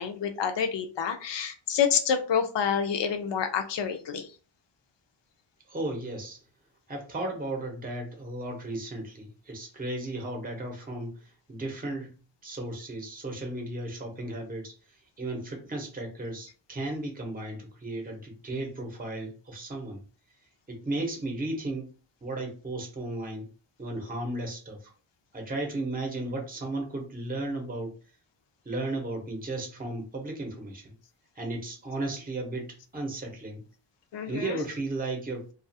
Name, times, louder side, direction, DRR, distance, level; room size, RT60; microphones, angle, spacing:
voice 1, 0.0-4.3 34.1-34.6, left 7 dB, 60° left, 7 dB, 0.6 m, -28 dB
voice 2, 5.7-6.4 6.9-12.1 12.4-20.0 20.7-21.9 22.2-23.5 23.8-24.9 25.3-28.0 28.6-30.9 31.3-33.6 34.3-35.5, right 2 dB, 20° right, 2 dB, 0.8 m, -35 dB
2.4 x 2.4 x 2.6 m, 0.37 s
wide cardioid pair, 130°, 48 cm